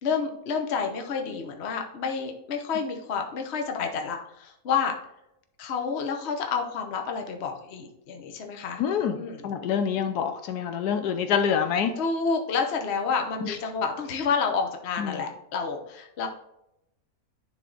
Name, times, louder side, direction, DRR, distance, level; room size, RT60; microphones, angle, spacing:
voice 1, 0.0-4.9 5.6-8.8 9.1-9.4 12.0-16.3, left 5 dB, 50° left, 3 dB, 1.0 m, -29 dB
voice 2, 8.8-11.9 13.4-13.6 15.0-15.2, left 7 dB, 80° left, 7 dB, 1.2 m, -26 dB
10.0 x 3.6 x 3.9 m, 0.81 s
omnidirectional pair, 1.7 m